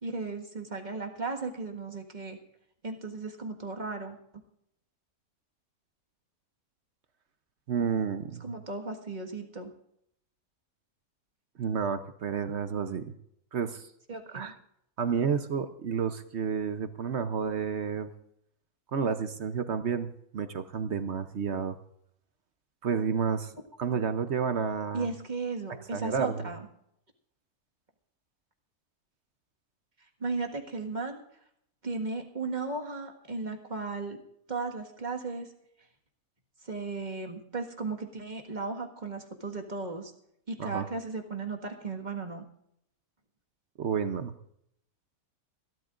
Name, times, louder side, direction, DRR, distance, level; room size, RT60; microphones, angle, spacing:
voice 1, 0.0-2.4 2.8-4.2 8.4-9.7 14.1-14.5 24.9-26.7 30.2-31.2 31.8-34.2 34.5-35.5 36.6-40.1 40.5-42.4, right 3 dB, 30° right, 3 dB, 1.8 m, -35 dB
voice 2, 7.7-8.5 11.6-13.1 13.5-13.9 14.3-14.5 15.0-18.1 18.9-21.8 22.8-23.5 23.8-25.1 25.9-26.5 40.6-40.9 43.8-44.3, right 6 dB, 55° right, 10 dB, 1.0 m, -30 dB
27.0 x 12.5 x 2.5 m, 0.74 s
omnidirectional pair, 1.6 m